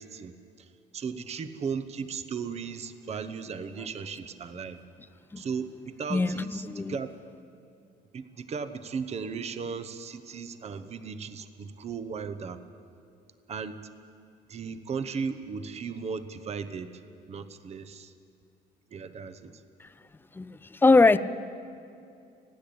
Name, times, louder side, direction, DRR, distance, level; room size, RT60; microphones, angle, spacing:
voice 1, 0.0-4.8 5.4-7.1 8.1-12.6 13.5-13.8 14.5-17.0 17.3-18.1 18.9-19.6, right 5 dB, 40° right, 11 dB, 0.9 m, -36 dB
voice 2, 6.1-7.0 19.8-19.9 20.3-21.2, left 3 dB, 10° left, 14 dB, 0.6 m, -22 dB
29.5 x 10.0 x 8.6 m, 2.5 s
cardioid pair, 110°, 17 cm